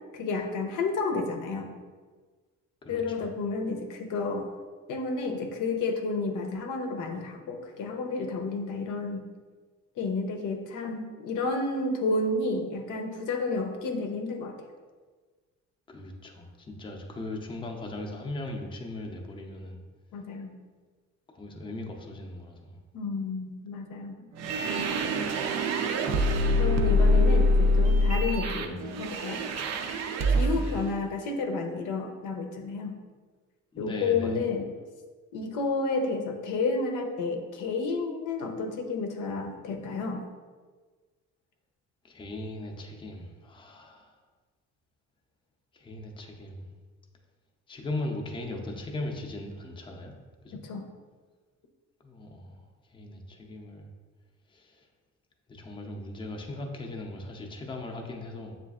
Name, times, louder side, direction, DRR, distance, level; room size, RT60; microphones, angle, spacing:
voice 1, 0.1-1.8 2.9-4.5 4.9-9.2 10.0-14.6 20.1-20.5 22.9-24.3 24.6-25.2 26.6-29.4 30.3-33.0 33.8-34.7 35.3-40.2 50.5-50.8, left 3 dB, 85° left, 4 dB, 0.6 m, -31 dB
voice 2, 2.8-3.3 15.9-19.8 21.3-22.8 27.2-27.5 28.5-28.8 30.6-30.9 33.7-34.4 42.0-44.2 45.7-46.6 47.7-50.1 50.4-50.6 52.0-53.9 54.5-54.9 55.5-58.6, left 2 dB, 15° left, 2 dB, 0.5 m, -39 dB
sound 1, 24.4-30.8, left 1 dB, 60° right, 0.4 m, -25 dB
7.2 x 2.5 x 2.3 m, 1.4 s
cardioid pair, 115°, 30 cm